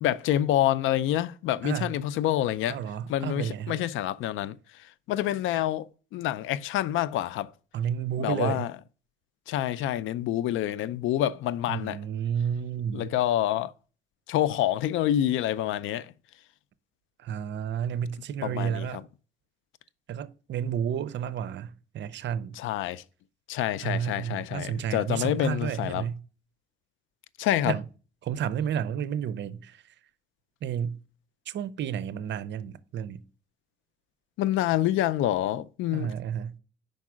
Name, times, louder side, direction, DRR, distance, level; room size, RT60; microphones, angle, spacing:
voice 1, 0.0-2.8 3.1-7.5 8.2-8.7 9.5-12.0 12.9-13.7 14.3-16.1 18.4-19.0 22.6-23.0 23.5-26.1 27.4-27.8 34.4-36.1, left 12 dB, 85° left, 0.4 m, -27 dB
voice 2, 2.7-3.8 7.7-8.7 11.7-13.1 17.2-19.0 20.1-22.6 23.8-26.2 27.7-27.8 28.2-29.8 30.6-31.0 31.5-33.2 35.9-36.6, right 8 dB, 65° right, 0.6 m, -31 dB
5.3 x 4.6 x 6.1 m
cardioid pair, 90°, 20 cm